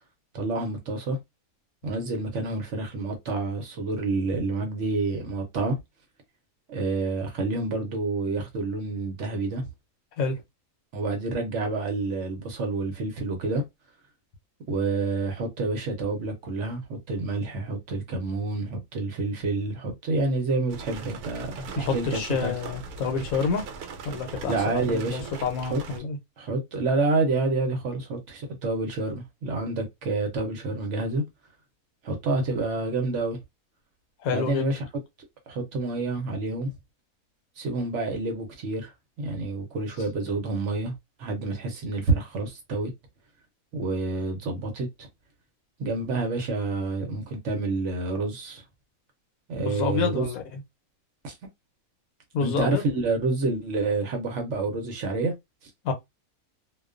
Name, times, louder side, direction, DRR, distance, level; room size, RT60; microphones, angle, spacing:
voice 1, 0.3-1.2 1.8-5.8 6.7-9.7 10.9-13.6 14.7-22.5 24.5-25.4 25.7-25.8 26.4-31.2 32.0-33.4 34.3-34.8 35.5-36.7 37.6-38.9 39.2-40.9 41.2-42.9 43.7-45.1 45.8-48.6 49.5-50.3 51.2-51.3 52.4-55.3, right 3 dB, 60° right, 0.9 m, -28 dB
sound 1, 20.7-26.0, right 4 dB, 85° right, 1.1 m, -40 dB
voice 2, 21.8-23.7 24.0-26.2 34.2-34.7 49.7-50.4 52.3-52.8 55.8-55.9, left 5 dB, 75° left, 1.0 m, -28 dB
2.4 x 2.2 x 2.4 m
omnidirectional pair, 1.5 m